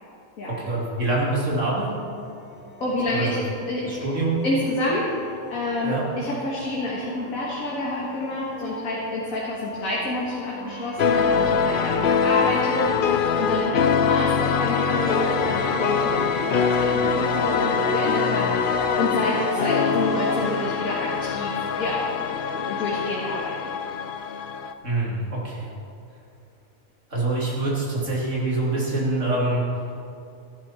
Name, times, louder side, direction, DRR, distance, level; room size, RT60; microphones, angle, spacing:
voice 1, 0.4-1.9 3.1-3.4 3.8-4.4 5.8-6.0 24.8-25.7 27.1-29.7, right 2 dB, 60° right, -5 dB, 3.1 m, -25 dB
sound 1, 1.6-19.2, equal, 10° right, 0.9 m, -41 dB
voice 2, 2.8-3.4 3.7-4.1 4.4-23.8, left 1 dB, 75° left, -5 dB, 2.2 m, -28 dB
sound 2, 11.0-24.7, left 6 dB, 55° left, 0.6 m, -23 dB
sound 3, 14.9-20.7, right 5 dB, 75° right, 1.2 m, -34 dB
15.0 x 11.5 x 4.4 m, 2.6 s
omnidirectional pair, 1.5 m